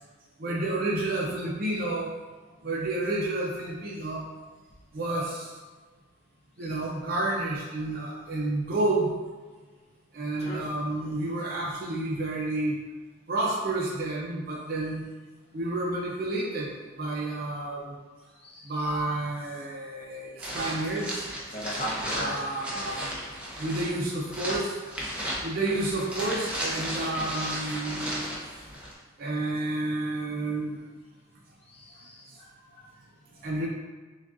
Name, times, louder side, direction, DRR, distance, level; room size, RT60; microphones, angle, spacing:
voice 1, 0.4-2.1 2.6-4.3 4.9-5.5 6.6-9.1 10.1-12.8 13.3-15.0 15.5-18.0 18.7-21.3 22.1-23.1 23.6-24.8 25.4-28.3 29.2-30.8 33.4-33.7, right 2 dB, 50° right, -4 dB, 0.6 m, -30 dB
voice 2, 18.4-18.9 21.5-22.3 22.7-22.9 31.7-32.9, equal, 30° left, -4 dB, 0.6 m, -38 dB
sound 1, 20.4-28.9, equal, 5° right, 0.7 m, -35 dB
6.1 x 2.3 x 2.5 m, 1.3 s
head